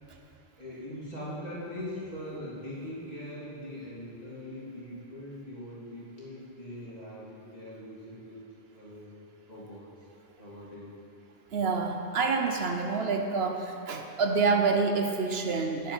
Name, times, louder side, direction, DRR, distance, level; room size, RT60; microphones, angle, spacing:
voice 1, 0.6-8.4 8.7-9.2 9.5-9.9 10.4-10.9, left 1 dB, 35° left, -8 dB, 3.0 m, -41 dB
voice 2, 11.5-15.9, right 4 dB, 70° right, 4 dB, 1.0 m, -27 dB
10.5 x 9.2 x 5.5 m, 2.8 s
omnidirectional pair, 1.1 m